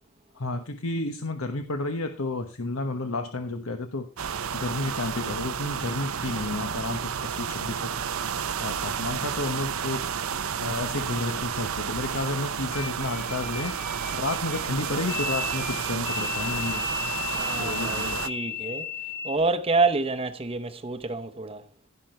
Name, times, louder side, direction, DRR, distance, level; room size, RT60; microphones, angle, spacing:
voice 1, 0.3-4.1 4.5-7.9 8.6-10.0 10.6-13.7 14.1-16.8 17.6-18.3, left 2 dB, 80° left, 1.1 m, -31 dB
sound 1, 4.2-18.3, right 7 dB, 80° right, 0.7 m, -31 dB
sound 2, 12.7-19.4, left 5 dB, 35° left, 3.3 m, -34 dB
voice 2, 17.4-18.9 19.2-21.6, right 3 dB, 25° right, 0.8 m, -27 dB
15.5 x 5.9 x 4.4 m
head